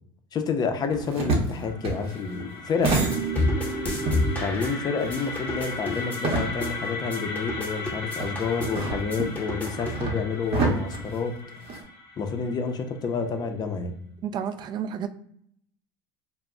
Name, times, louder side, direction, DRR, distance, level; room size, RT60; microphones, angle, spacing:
voice 1, 0.3-2.9 4.4-11.3 12.2-13.9, left 5 dB, 35° left, 6 dB, 0.5 m, -29 dB
sound 1, 0.9-3.7 4.1-6.9 7.2-7.3 8.2-11.8, right 3 dB, 55° right, 0.8 m, -29 dB
sound 2, 1.3-13.2, left 3 dB, 85° left, 0.6 m, -38 dB
sound 3, 2.8-10.1, equal, 10° left, 0.8 m, -31 dB
voice 2, 14.2-15.1, right 8 dB, 40° right, 10 dB, 0.3 m, -31 dB
2.1 x 2.0 x 3.6 m, 0.69 s
supercardioid pair, 90°, 12 cm